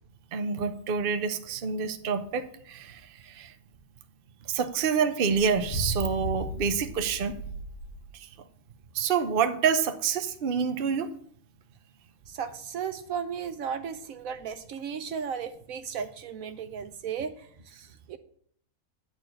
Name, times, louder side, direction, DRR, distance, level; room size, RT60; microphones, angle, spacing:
voice 1, 0.3-3.5 4.5-7.3 8.9-11.1, right 6 dB, 45° right, 8 dB, 0.8 m, -27 dB
sound 1, 5.3-8.1, equal, 50° left, 1.7 m, -35 dB
voice 2, 12.3-18.2, right 7 dB, 70° right, 10 dB, 1.0 m, -35 dB
9.6 x 4.6 x 7.7 m, 0.62 s
omnidirectional pair, 1.6 m